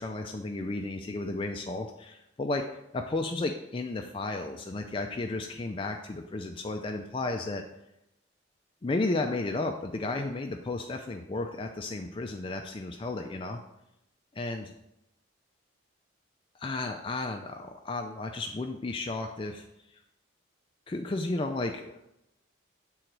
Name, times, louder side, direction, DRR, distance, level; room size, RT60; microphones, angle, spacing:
voice 1, 0.0-2.7 2.9-7.6 8.8-13.6 14.3-14.7 16.5-20.0 20.9-22.0, left 2 dB, 25° left, 4 dB, 0.3 m, -33 dB
7.8 x 3.9 x 4.6 m, 0.86 s
head